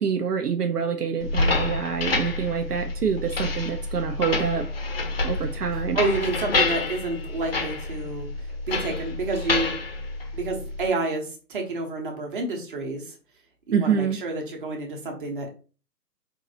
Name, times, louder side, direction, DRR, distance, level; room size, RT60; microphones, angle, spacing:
voice 1, 0.0-4.7 5.2-6.0 13.7-14.2, right 7 dB, 70° right, 5 dB, 0.7 m, -26 dB
sound 1, 1.2-10.9, left 3 dB, 40° left, 0.6 m, -28 dB
voice 2, 5.7-8.3 8.7-9.7 10.3-13.1 13.7-15.5, right 3 dB, 30° right, 1 dB, 1.0 m, -29 dB
4.5 x 2.6 x 2.8 m, 0.36 s
figure-of-eight pair, 145°, 49 cm